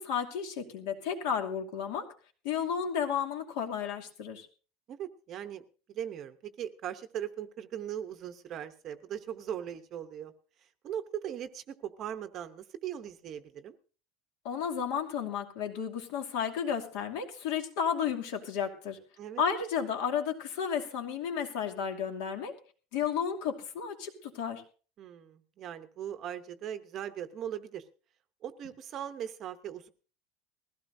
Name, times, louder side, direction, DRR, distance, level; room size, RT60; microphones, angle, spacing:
voice 1, 0.0-2.1 2.4-4.5 14.4-19.0 19.4-22.5 22.9-24.6, left 7 dB, 65° left, 5 dB, 2.5 m, -32 dB
voice 2, 4.9-10.3 10.8-13.7 19.2-19.4 25.0-27.8 28.4-29.9, right 10 dB, 30° right, 9 dB, 0.8 m, -39 dB
20.5 x 15.5 x 2.7 m, 0.38 s
cardioid pair, 180°, 0 cm